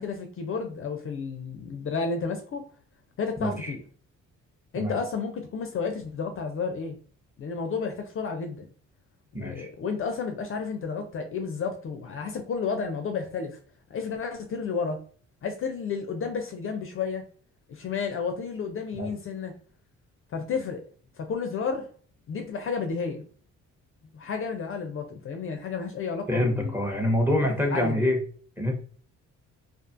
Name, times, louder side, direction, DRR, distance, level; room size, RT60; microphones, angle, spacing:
voice 1, 0.0-2.7 3.2-3.8 4.7-7.0 7.4-8.7 9.3-13.6 13.9-15.0 15.4-17.3 17.7-19.5 20.3-20.8 21.2-21.9 22.3-23.2 24.1-26.7 27.3-28.1, left 5 dB, 45° left, 0.4 m, -31 dB
voice 2, 3.4-3.7 4.7-5.0 9.3-9.7 19.0-19.1 26.3-28.2 28.6-28.7, left 1 dB, 5° right, 0.7 m, -26 dB
2.5 x 2.3 x 2.5 m
cardioid pair, 90°, 30 cm